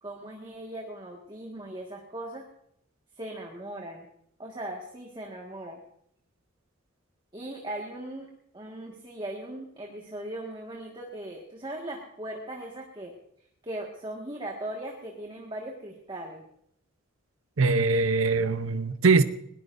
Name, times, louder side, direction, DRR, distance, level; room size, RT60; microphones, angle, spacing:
voice 1, 0.0-2.4 3.2-4.1 4.4-5.8 7.3-8.3 8.5-13.1 13.6-16.4, right 1 dB, 25° right, 1.8 m, -39 dB
voice 2, 17.6-19.2, right 4 dB, 85° right, 0.8 m, -22 dB
20.5 x 19.0 x 2.6 m
head